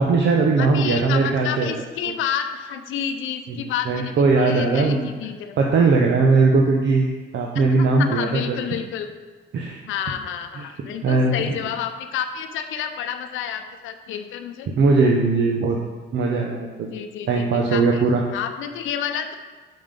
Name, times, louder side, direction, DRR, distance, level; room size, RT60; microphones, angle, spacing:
voice 1, 0.0-1.8 3.5-5.1 5.6-7.1 7.3-8.6 9.5-9.8 10.6-10.7 11.0-11.3 14.8-15.8 16.1-16.9 17.3-18.2, right 3 dB, 65° right, 0 dB, 0.8 m, -19 dB
voice 2, 0.6-5.6 7.8-9.1 9.9-14.7 16.9-18.1 18.3-19.4, left 8 dB, 85° left, 7 dB, 0.6 m, -29 dB
5.6 x 5.4 x 5.2 m, 1.4 s
cardioid pair, 90°, 20 cm